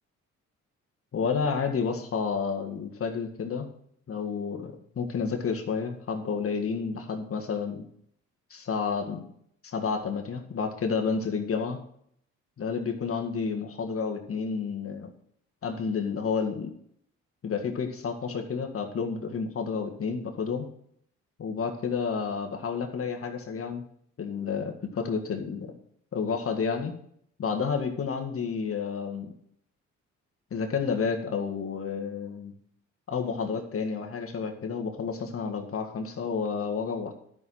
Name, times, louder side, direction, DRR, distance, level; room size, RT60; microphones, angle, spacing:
voice 1, 1.1-3.7 4.1-7.9 8.5-9.3 9.6-11.8 12.6-15.1 15.6-16.7 17.4-20.7 21.4-23.8 24.2-25.8 26.1-26.9 27.4-29.3 30.5-32.5 33.1-37.1, left 5 dB, 50° left, 4 dB, 1.7 m, -30 dB
12.0 x 6.4 x 5.7 m, 0.67 s
cardioid pair, 90°, 30 cm